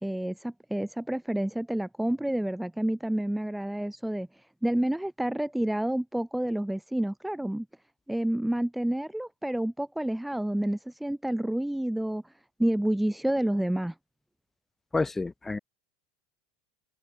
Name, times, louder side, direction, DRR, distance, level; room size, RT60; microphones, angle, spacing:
voice 1, 0.0-4.3 4.6-7.7 8.1-12.2 12.6-13.9, right 1 dB, 5° right, 3.5 m, -29 dB
voice 2, 14.9-15.6, left 3 dB, 15° left, 4.9 m, -29 dB
open air
hypercardioid pair, 100°, 2 cm